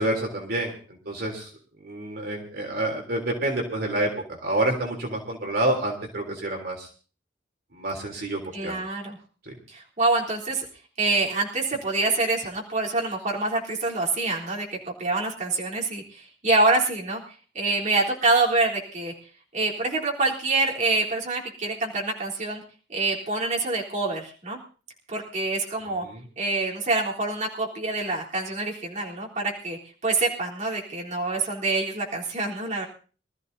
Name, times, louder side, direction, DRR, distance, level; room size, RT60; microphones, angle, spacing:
voice 1, 0.0-1.5 1.8-6.9 7.7-8.7 9.4-9.6 25.9-26.2, right 1 dB, 60° right, 1 dB, 3.4 m, -28 dB
voice 2, 8.5-9.2 9.7-10.6 11.0-17.2 17.5-19.1 19.5-22.6 22.9-24.6 25.1-26.1 26.4-32.8, right 3 dB, 45° right, -3 dB, 3.7 m, -26 dB
25.5 x 14.5 x 2.8 m, 0.39 s
head